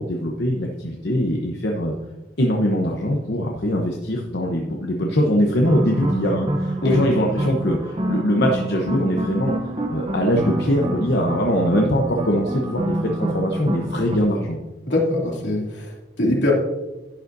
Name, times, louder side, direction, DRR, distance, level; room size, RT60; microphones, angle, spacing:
voice 1, 0.0-1.9 2.4-9.5 9.9-14.7, equal, 65° left, 1 dB, 1.0 m, -22 dB
sound 1, 5.6-14.2, right 1 dB, 30° right, 0.8 m, -27 dB
voice 2, 14.9-16.5, left 1 dB, 85° left, -2 dB, 2.6 m, -22 dB
11.5 x 9.2 x 2.7 m, 1.1 s
head